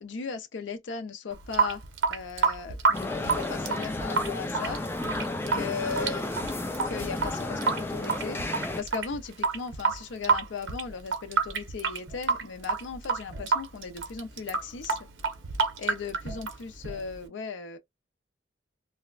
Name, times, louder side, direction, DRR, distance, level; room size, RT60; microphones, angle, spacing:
voice 1, 0.0-1.8 2.1-4.8 5.5-6.3 6.9-15.0 15.8-17.8, left 5 dB, 70° left, 0.5 m, -37 dB
Water tap faucet / Sink (filling or washing) / Drip, 1.3-17.3, right 5 dB, 80° right, 0.9 m, -29 dB
sound 1, 2.9-8.8, left 2 dB, 10° left, 0.4 m, -32 dB
4.0 x 2.1 x 2.3 m
head